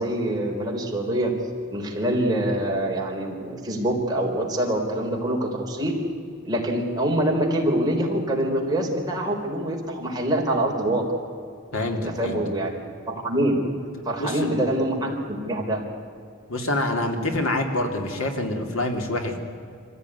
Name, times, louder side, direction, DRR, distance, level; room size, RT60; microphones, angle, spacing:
voice 1, 0.0-1.3 1.7-6.0 6.4-11.0 12.1-12.7 13.1-13.6 14.1-15.9, right 1 dB, 20° right, -1 dB, 3.6 m, -25 dB
voice 2, 11.7-12.4 14.2-14.5 16.5-19.4, left 1 dB, 90° left, 4 dB, 2.9 m, -26 dB
25.0 x 15.5 x 9.6 m, 2.4 s
head